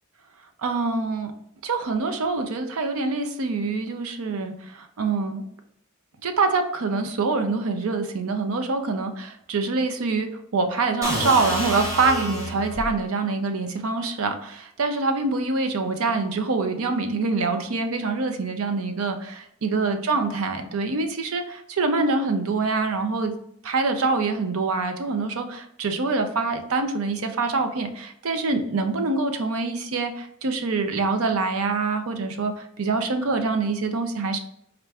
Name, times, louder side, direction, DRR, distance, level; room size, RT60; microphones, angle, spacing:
voice 1, 0.6-1.3 1.6-5.4 6.2-23.3 23.6-34.4, right 3 dB, 80° right, 7 dB, 0.6 m, -25 dB
sound 1, 11.0-13.0, equal, 15° right, 0.7 m, -28 dB
4.4 x 2.5 x 3.4 m, 0.73 s
head